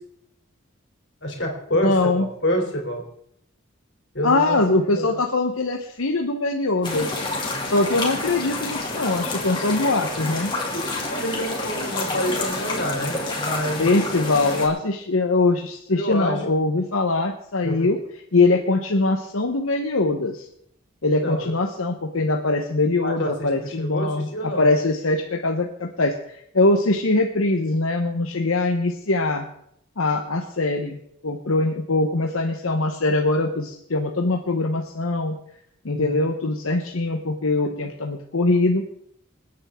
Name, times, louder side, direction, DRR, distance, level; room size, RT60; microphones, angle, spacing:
voice 1, 1.2-3.0 4.1-5.2 10.7-14.1 15.9-16.4 17.6-17.9 21.2-21.5 23.0-24.7 35.9-36.2, equal, 55° left, 2 dB, 3.4 m, -27 dB
voice 2, 1.8-2.3 4.2-7.2 7.7-10.5 13.8-18.0 18.3-20.5 21.0-29.5 30.0-31.0 31.2-35.4 35.8-38.8, left 2 dB, 85° left, 3 dB, 1.1 m, -22 dB
sound 1, 6.8-14.7, left 2 dB, 20° left, 2.6 m, -28 dB
26.5 x 8.9 x 3.7 m, 0.72 s
head